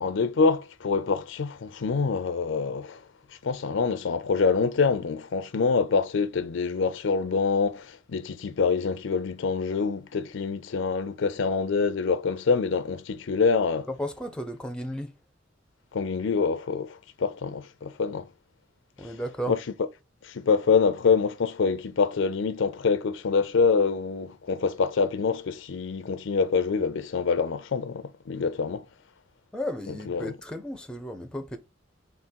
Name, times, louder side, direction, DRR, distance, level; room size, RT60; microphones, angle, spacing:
voice 1, 0.0-3.0 3.4-13.9 15.9-18.3 19.0-19.1 19.5-19.6 20.2-28.8 30.1-30.3, left 5 dB, 65° left, 0.5 m, -25 dB
voice 2, 13.9-15.1 19.0-19.5 29.5-31.6, equal, 5° left, 0.5 m, -34 dB
3.6 x 3.4 x 4.4 m
head